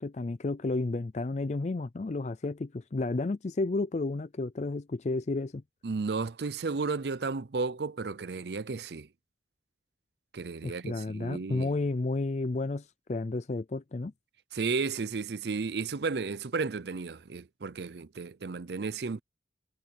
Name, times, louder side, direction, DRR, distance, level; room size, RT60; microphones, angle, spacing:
voice 1, 0.0-5.6 10.6-14.1, left 2 dB, 40° left, 0.4 m, -32 dB
voice 2, 5.8-9.1 10.3-11.7 14.5-19.2, right 4 dB, 65° right, 0.5 m, -33 dB
head